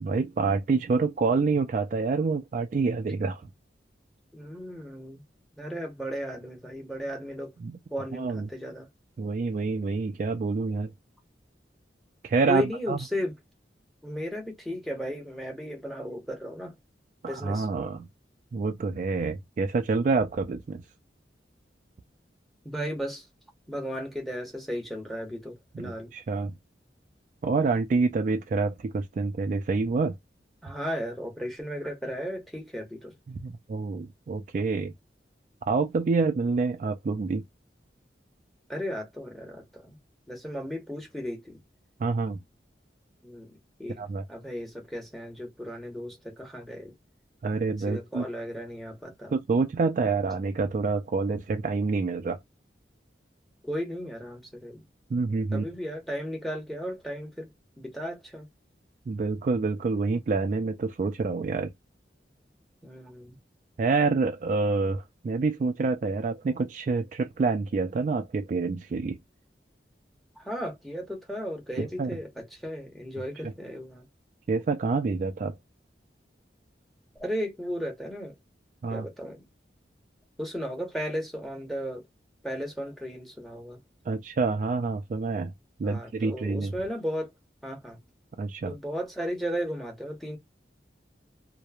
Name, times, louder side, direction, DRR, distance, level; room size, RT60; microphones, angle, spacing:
voice 1, 0.0-3.4 7.6-7.8 8.1-8.5 9.2-10.9 12.2-13.0 17.2-18.1 18.5-20.8 25.7-26.6 27.4-30.2 33.3-34.9 35.7-37.4 42.0-42.4 44.0-44.2 47.4-48.3 49.3-52.4 55.1-55.6 59.1-61.7 63.8-69.2 71.8-72.1 74.5-75.6 78.8-79.0 84.1-85.5 85.8-86.7 88.4-88.8, right 4 dB, 45° right, 0.3 m, -27 dB
voice 2, 4.3-5.2 5.6-7.5 7.9-8.9 12.5-13.3 14.0-16.7 17.3-17.7 22.6-23.2 23.7-26.1 30.6-33.1 38.7-40.0 40.3-41.6 43.2-44.0 44.3-46.9 47.9-49.3 53.6-54.8 55.5-57.5 57.8-58.5 62.8-63.4 70.4-74.1 77.2-78.3 78.9-79.4 80.4-82.0 82.4-83.8 85.8-87.3 87.6-88.0 88.7-90.4, equal, ahead, 0.9 m, -35 dB
2.9 x 2.0 x 2.3 m
head